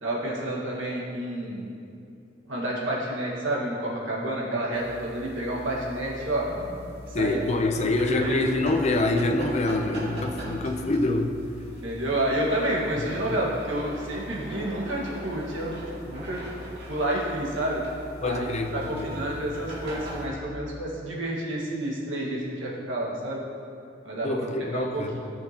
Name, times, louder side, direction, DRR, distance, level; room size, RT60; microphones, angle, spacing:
voice 1, 0.0-1.7 2.5-6.5 7.1-7.4 7.7-8.5 11.8-16.4 16.9-17.8 18.2-18.5 18.7-23.4 24.0-24.4 24.7-25.2, right 1 dB, 80° right, -4 dB, 1.6 m, -29 dB
sound 1, 4.7-20.3, equal, 60° right, 2.0 m, -40 dB
voice 2, 7.1-11.4 13.0-13.4 18.2-19.1 24.2-25.2, left 2 dB, 35° left, 5 dB, 0.6 m, -26 dB
14.0 x 5.9 x 2.9 m, 2.5 s
head